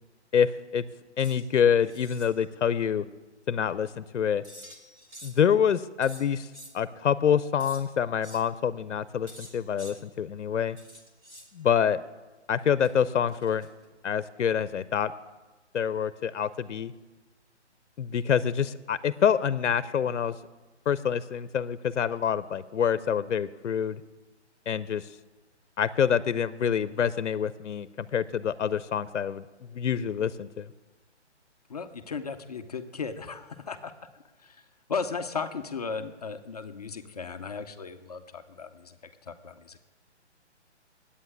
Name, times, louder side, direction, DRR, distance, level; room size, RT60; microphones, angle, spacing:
voice 1, 0.3-0.8 1.2-3.0 3.5-4.4 5.2-6.5 6.7-10.8 11.5-12.0 12.5-13.7 14.0-15.1 15.7-16.9 18.0-20.4 20.9-24.0 24.7-25.1 25.8-29.4 29.7-30.7, left 8 dB, 80° left, 16 dB, 0.7 m, -26 dB
sound 1, 1.2-1.5 1.8-2.3 4.4-5.5 6.0-6.7 7.6-7.8 8.2-8.4 9.3-10.0 10.8-11.5 12.8-13.9, equal, 15° right, 1.3 m, -48 dB
voice 2, 31.7-33.9 34.4-39.0 39.2-39.8, left 5 dB, 35° left, 7 dB, 0.6 m, -36 dB
9.4 x 8.8 x 9.8 m, 1.2 s
hypercardioid pair, 165°, 35 cm